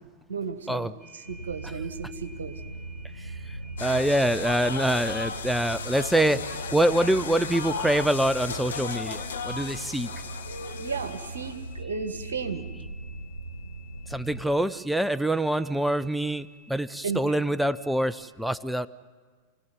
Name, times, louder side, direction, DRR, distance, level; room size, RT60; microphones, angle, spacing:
voice 1, 0.3-2.6 10.8-12.7 17.0-17.2, right 5 dB, 70° right, 7 dB, 1.9 m, -34 dB
sound 1, 1.0-18.1, left 1 dB, 20° left, 7.2 m, -52 dB
sound 2, 1.2-14.4, right 2 dB, 85° right, 1.4 m, -40 dB
HK fish market, 3.8-11.7, left 6 dB, 65° left, 1.4 m, -36 dB
voice 2, 3.8-6.4 6.7-10.1 14.1-18.9, right 1 dB, ahead, 16 dB, 0.6 m, -25 dB
28.0 x 18.0 x 9.1 m, 1.5 s
figure-of-eight pair, 90°, 0 cm